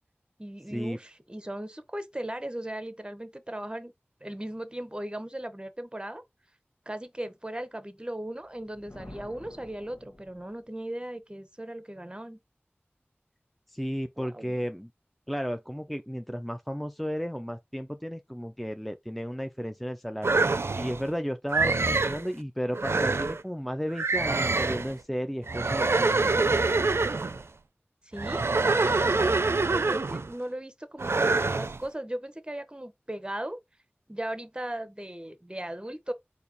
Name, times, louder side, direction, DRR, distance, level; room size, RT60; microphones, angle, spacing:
voice 1, 0.4-3.9 4.2-6.2 6.9-12.4 14.2-14.6 28.0-33.6 34.1-36.1, right 1 dB, 20° right, 0.8 m, -37 dB
Thunder, 8.4-10.8, left 1 dB, 60° left, 1.3 m, -49 dB
voice 2, 13.7-14.9 15.3-20.4 20.7-26.6, equal, ahead, 0.4 m, -33 dB
sound 1, 20.2-21.0 21.5-22.2 22.7-23.4 24.0-24.9 25.5-27.4 28.2-30.3 31.0-31.8, right 3 dB, 75° right, 0.4 m, -25 dB
4.1 x 2.7 x 3.9 m
wide cardioid pair, 50°, 4 cm